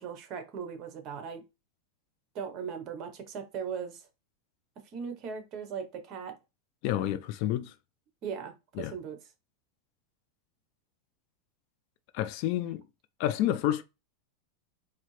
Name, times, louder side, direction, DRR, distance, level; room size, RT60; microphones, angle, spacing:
voice 1, 0.0-1.4 2.3-4.1 4.9-6.3 8.2-9.2, right 6 dB, 40° right, 1.0 m, -38 dB
voice 2, 6.8-7.7 8.8-8.9 12.1-12.8 13.2-13.8, left 12 dB, 50° left, 0.4 m, -29 dB
4.1 x 2.7 x 3.2 m
supercardioid pair, 145°, 0 cm